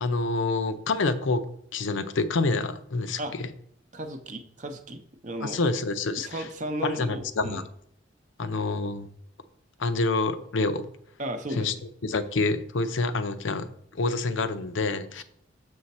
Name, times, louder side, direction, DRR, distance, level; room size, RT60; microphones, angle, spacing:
voice 1, 0.0-1.4 1.7-3.5 5.4-6.5 6.8-7.6 8.4-9.1 9.8-10.9 11.6-11.7 12.0-13.7 13.9-15.2, left 3 dB, 85° left, 11 dB, 0.6 m, -27 dB
voice 2, 3.9-5.6 6.2-7.6 11.2-11.7, right 1 dB, 40° right, 7 dB, 0.7 m, -35 dB
6.9 x 6.3 x 4.1 m, 0.70 s
head